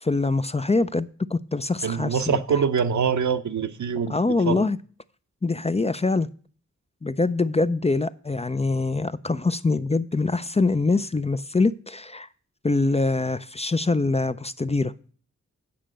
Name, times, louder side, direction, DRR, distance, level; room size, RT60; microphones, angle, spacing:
voice 1, 0.0-2.4 4.1-4.8 5.4-6.3 7.0-12.3 12.6-14.9, left 3 dB, 20° left, 0.4 m, -24 dB
voice 2, 1.8-4.2 4.5-4.6, right 6 dB, 75° right, 0.8 m, -24 dB
8.6 x 5.1 x 7.5 m
wide cardioid pair, 80°, 29 cm